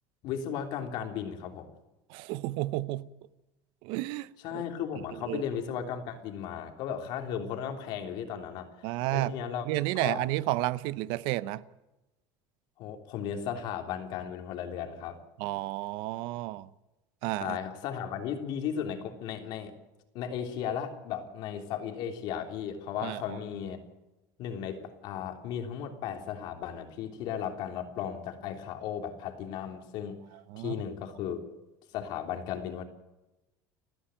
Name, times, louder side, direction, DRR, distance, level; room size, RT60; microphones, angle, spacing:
voice 1, 0.2-1.7 4.4-10.3 12.8-15.2 17.4-19.7 20.1-23.8 24.4-30.2 30.6-31.5 31.9-32.8, left 8 dB, 60° left, 3.2 m, -35 dB
voice 2, 2.1-3.1 3.8-4.3 4.5-4.6 5.3-5.4 8.8-9.3 9.7-11.6 15.4-16.7 17.2-17.6 23.0-23.2 30.5-30.7, right 17 dB, 65° right, 0.8 m, -31 dB
30.0 x 10.0 x 9.0 m
cardioid pair, 145°, 9 cm